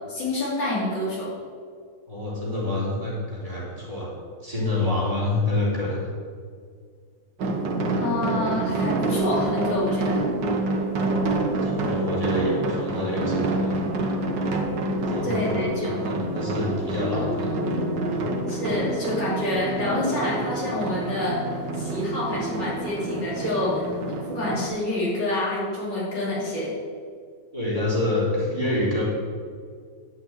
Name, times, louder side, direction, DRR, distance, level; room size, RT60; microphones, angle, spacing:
voice 1, 0.1-1.3 8.0-10.2 15.2-16.0 18.5-21.4 21.7-23.9 24.3-26.7, left 1 dB, 85° left, -6 dB, 4.0 m, -27 dB
voice 2, 2.1-4.1 4.4-6.0 11.6-13.8 15.1-17.6 18.1-18.2 27.5-29.0, left 2 dB, 20° right, -6 dB, 3.6 m, -27 dB
sound 1, 7.4-24.7, right 2 dB, 85° right, 2.0 m, -27 dB
sound 2, 17.0-21.2, left 5 dB, 45° left, 1.2 m, -36 dB
12.0 x 5.9 x 8.9 m, 2.1 s
omnidirectional pair, 1.9 m